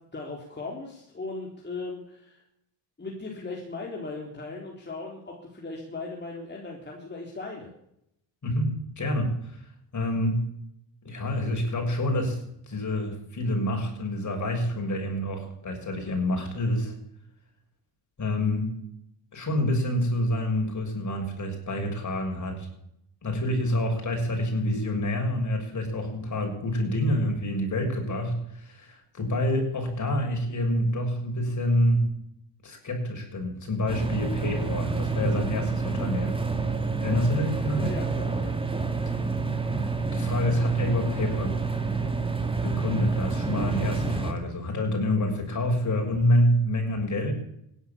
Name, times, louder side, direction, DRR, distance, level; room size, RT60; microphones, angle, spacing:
voice 1, 0.1-2.4 3.0-7.7 37.2-37.4 37.7-38.5, left 3 dB, 25° left, -2 dB, 4.0 m, -38 dB
voice 2, 8.4-9.6 9.9-10.4 11.1-12.4 12.7-16.9 18.2-18.7 19.3-22.7 23.2-32.1 32.6-36.4 37.0-37.9 40.1-41.6 42.6-47.3, left 1 dB, 40° left, 2 dB, 6.9 m, -27 dB
sound 1, 33.9-44.3, right 4 dB, 10° right, 2.7 m, -28 dB
16.0 x 11.5 x 7.3 m, 0.77 s
supercardioid pair, 80°, 44 cm